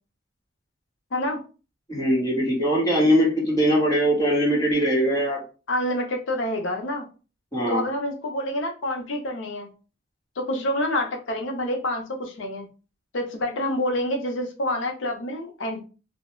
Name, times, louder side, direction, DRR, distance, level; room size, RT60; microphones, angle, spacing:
voice 1, 1.1-1.4 5.7-7.1 7.7-9.7 10.4-12.7 13.1-15.8, left 1 dB, 75° left, 3 dB, 0.6 m, -27 dB
voice 2, 1.9-5.4 7.5-7.9, equal, 20° left, -4 dB, 1.0 m, -21 dB
2.3 x 2.0 x 3.0 m, 0.34 s
head